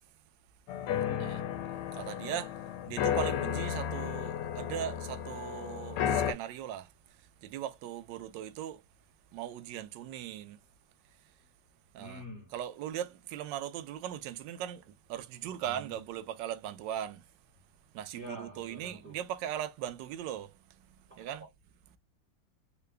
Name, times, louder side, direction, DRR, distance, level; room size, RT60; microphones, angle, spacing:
sound 1, 0.7-6.3, left 9 dB, 90° left, 1.4 m, -33 dB
voice 1, 0.9-1.4 12.0-12.5 15.7-16.0 18.1-19.1 21.1-21.4, right 1 dB, 10° right, 0.6 m, -47 dB
voice 2, 1.9-2.5 2.9-6.9 7.4-8.8 9.3-10.6 11.9-12.2 12.5-14.8 15.1-17.2 17.9-20.5 21.2-21.5, right 10 dB, 75° right, 1.1 m, -39 dB
3.8 x 2.2 x 3.2 m
omnidirectional pair, 2.3 m